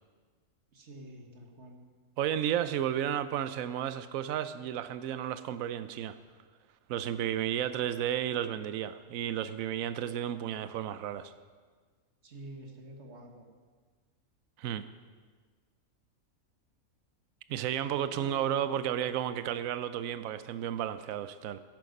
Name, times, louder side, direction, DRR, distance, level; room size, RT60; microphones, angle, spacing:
voice 1, 0.7-1.9 12.2-13.5 18.1-18.5, right 1 dB, 55° right, 3 dB, 1.7 m, -48 dB
voice 2, 2.2-6.2 6.9-11.3 14.6-14.9 17.5-21.6, right 10 dB, 75° right, 13 dB, 1.0 m, -32 dB
12.5 x 11.0 x 5.3 m, 1.5 s
omnidirectional pair, 1.4 m